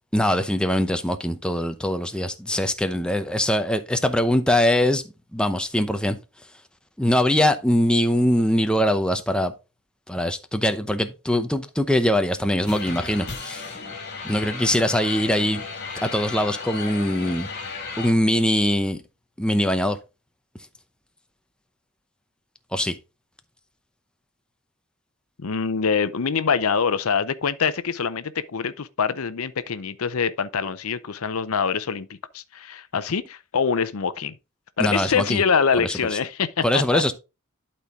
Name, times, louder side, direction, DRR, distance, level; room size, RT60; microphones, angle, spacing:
voice 1, 0.1-5.0 5.3-6.2 7.0-9.5 10.1-13.6 14.2-15.6 16.0-17.5 18.0-19.0 19.4-20.0 22.7-23.0 34.8-35.4 35.8-35.9 36.6-37.1, left 1 dB, 5° left, 0.7 m, -22 dB
sound 1, 12.7-18.1, left 4 dB, 55° left, 2.3 m, -34 dB
voice 2, 25.4-32.1 32.3-34.4 34.8-37.0, left 6 dB, 80° left, 0.6 m, -24 dB
11.5 x 4.4 x 3.6 m
head